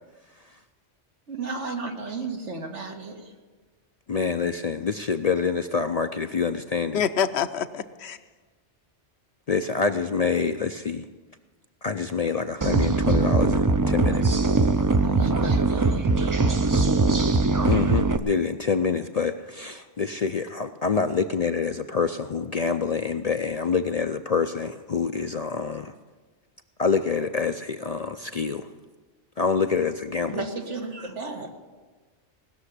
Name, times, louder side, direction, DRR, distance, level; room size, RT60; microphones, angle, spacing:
voice 1, 1.3-3.3 15.0-16.1 30.3-31.5, right 4 dB, 85° right, 3 dB, 2.0 m, -33 dB
voice 2, 4.1-7.0 9.5-11.0 11.8-14.4 17.7-25.9 26.8-28.7 29.4-30.4, left 5 dB, 50° left, 8 dB, 0.4 m, -26 dB
voice 3, 6.9-8.2, left 7 dB, 70° left, 11 dB, 1.0 m, -26 dB
sound 1, 12.6-18.2, right 3 dB, 30° right, 0.4 m, -21 dB
18.5 x 7.0 x 9.8 m, 1.4 s
omnidirectional pair, 1.2 m